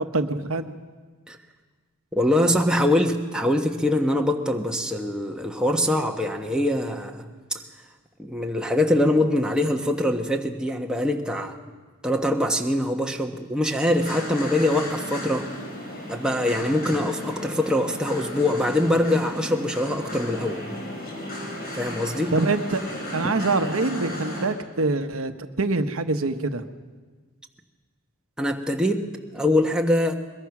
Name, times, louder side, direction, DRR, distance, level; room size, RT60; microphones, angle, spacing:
voice 1, 0.1-0.7 22.3-22.8 23.1-26.6, right 3 dB, 75° right, 8 dB, 1.0 m, -25 dB
voice 2, 2.1-7.2 8.2-11.5 12.0-15.5 16.1-20.6 21.7-22.3 28.4-29.1 29.3-30.1, left 1 dB, 5° right, 2 dB, 1.3 m, -23 dB
sound 1, 13.9-24.5, left 1 dB, 45° left, 5.3 m, -34 dB
22.0 x 21.5 x 6.0 m, 1.4 s
head